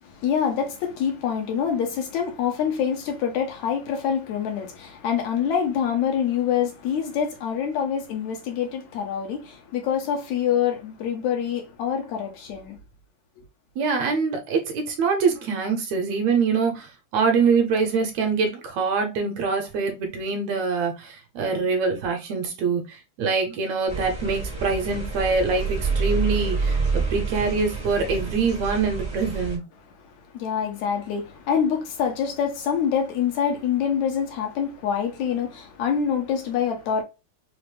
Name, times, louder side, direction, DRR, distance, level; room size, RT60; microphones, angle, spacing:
voice 1, 0.0-12.8 30.0-37.0, left 8 dB, 75° left, 2.1 m, -26 dB
voice 2, 13.8-29.6, right 5 dB, 75° right, 1.8 m, -24 dB
sound 1, 23.9-29.6, right 4 dB, 20° right, 0.8 m, -28 dB
5.1 x 2.0 x 3.1 m
omnidirectional pair, 3.4 m